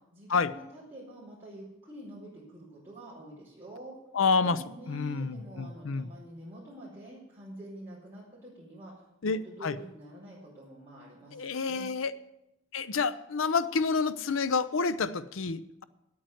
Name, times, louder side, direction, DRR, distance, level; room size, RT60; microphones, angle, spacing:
voice 1, 0.1-3.9 4.4-8.9 9.2-11.9, right 1 dB, 10° right, -9 dB, 4.7 m, -47 dB
voice 2, 4.1-4.6 4.9-6.1 9.2-9.7 11.3-12.2 12.7-15.8, left 4 dB, 75° left, 14 dB, 0.6 m, -29 dB
9.3 x 8.7 x 7.8 m, 0.89 s
head